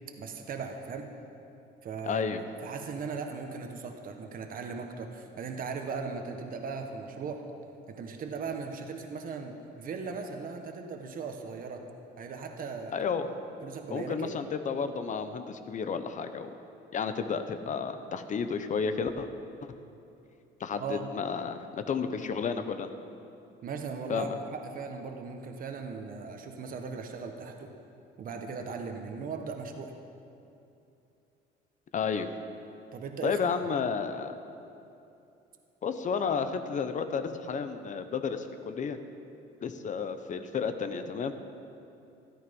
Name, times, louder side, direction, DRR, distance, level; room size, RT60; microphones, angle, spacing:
voice 1, 0.2-1.1 1.8-7.4 7.9-11.8 12.2-13.0 13.6-14.3 20.7-21.1 23.6-27.7 28.2-29.9 32.9-33.5, right 5 dB, 45° right, 4 dB, 1.3 m, -38 dB
voice 2, 2.0-2.4 12.9-13.3 13.9-16.5 16.9-19.3 20.6-21.6 21.9-22.9 24.1-24.3 31.9-32.3 33.2-34.3 35.8-39.0 39.6-41.3, left 6 dB, 40° left, 9 dB, 0.8 m, -32 dB
13.5 x 12.5 x 5.4 m, 2.7 s
cardioid pair, 130°, 20 cm